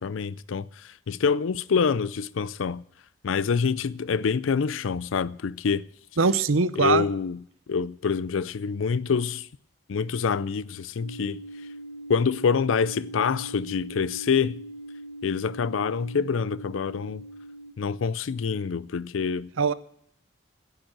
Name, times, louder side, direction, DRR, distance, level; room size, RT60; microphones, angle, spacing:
voice 1, 0.0-2.8 3.2-5.8 6.8-7.4 7.7-9.5 9.9-11.4 12.1-14.6 15.2-17.2 17.8-19.7, left 6 dB, 80° left, 0.4 m, -26 dB
voice 2, 6.2-7.0 19.6-19.7, right 4 dB, 90° right, 0.7 m, -21 dB
sound 1, 11.0-17.7, right 1 dB, 55° left, 1.9 m, -41 dB
10.5 x 9.0 x 8.7 m
head